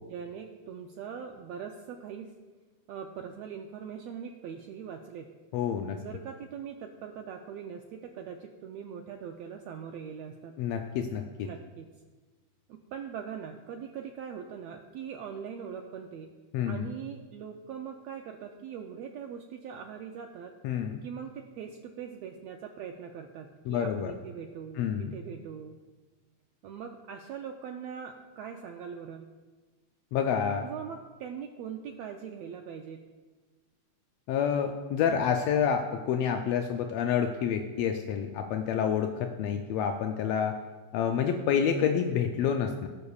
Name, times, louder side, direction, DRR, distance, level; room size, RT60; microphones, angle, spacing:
voice 1, 0.1-2.3 2.9-5.3 5.9-10.6 11.4-11.9 12.7-16.3 16.7-20.5 21.0-25.8 26.6-29.3 30.6-33.0, right 7 dB, 80° right, 3 dB, 1.5 m, -41 dB
voice 2, 5.5-6.0 10.6-11.5 16.5-16.9 20.6-21.0 23.7-24.1 24.8-25.1 30.1-30.6 34.3-40.5 40.9-42.9, left 7 dB, 85° left, 5 dB, 1.4 m, -28 dB
19.0 x 6.8 x 2.4 m, 1.3 s
omnidirectional pair, 3.5 m